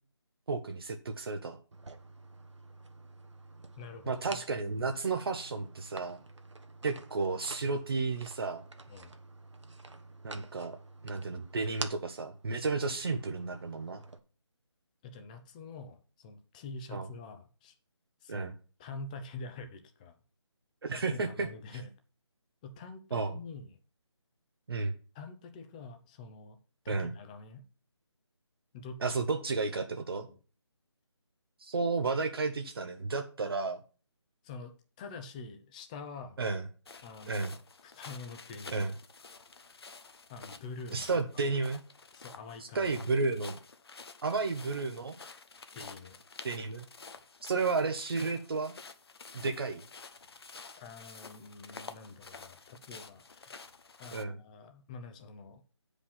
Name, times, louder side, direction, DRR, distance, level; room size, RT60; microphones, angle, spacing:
voice 1, 0.5-1.6 4.1-6.2 6.8-8.6 10.2-10.8 11.0-14.0 16.9-17.1 18.3-18.5 20.8-21.5 23.1-23.4 24.7-24.9 26.9-27.1 29.0-30.3 31.6-33.8 36.4-36.6 37.3-37.5 38.7-38.9 40.9-41.8 42.6-43.6 44.2-45.2 46.4-46.9 47.5-48.7 49.3-49.8 54.1-54.4, right 4 dB, 55° right, 5 dB, 1.1 m, -32 dB
sound 1, 1.7-14.2, right 3 dB, 80° right, 1.4 m, -48 dB
voice 2, 3.8-4.4 8.9-9.2 15.0-17.7 18.2-20.2 20.9-21.9 22.6-23.8 25.1-26.6 26.8-27.7 28.7-29.2 30.2-30.4 34.4-36.4 37.0-38.9 40.3-41.2 42.1-43.1 45.7-46.2 50.8-53.7 54.0-55.6, left 3 dB, 15° left, 6 dB, 0.8 m, -46 dB
sound 2, 36.9-54.2, left 4 dB, 60° left, 1.1 m, -50 dB
8.3 x 5.1 x 5.7 m, 0.37 s
figure-of-eight pair, 160°, 15 cm